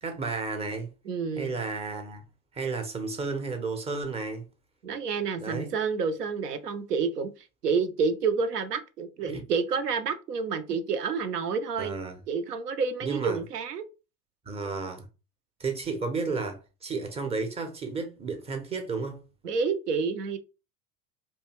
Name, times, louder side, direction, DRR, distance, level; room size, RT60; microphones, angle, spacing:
voice 1, 0.0-0.9 1.4-2.2 2.5-4.4 5.4-5.7 9.3-9.5 11.8-12.2 13.0-13.4 14.5-15.1 15.6-19.2, right 4 dB, 15° right, 0.5 m, -32 dB
voice 2, 1.1-1.5 4.8-7.3 7.6-11.9 12.3-13.8 19.4-20.4, right 5 dB, 90° right, 0.5 m, -29 dB
2.7 x 2.3 x 2.8 m
figure-of-eight pair, 80°, 46 cm